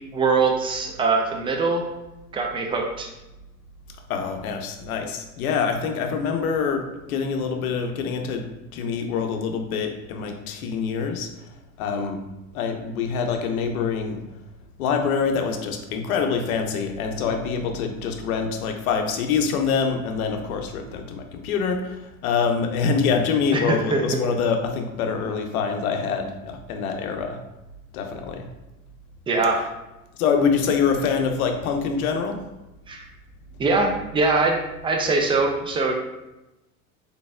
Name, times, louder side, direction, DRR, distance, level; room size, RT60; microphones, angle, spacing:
voice 1, 0.1-1.8 2.3-3.1 23.5-24.0 29.3-29.6 32.9-33.1 33.6-34.6 34.8-35.9, right 3 dB, 15° right, 2 dB, 0.3 m, -22 dB
voice 2, 4.1-8.5 8.7-11.3 11.8-12.2 12.5-14.2 14.8-27.4 27.9-28.5 30.2-32.4, left 5 dB, 70° left, 4 dB, 0.7 m, -25 dB
3.9 x 3.5 x 2.3 m, 0.98 s
hypercardioid pair, 85°, 45 cm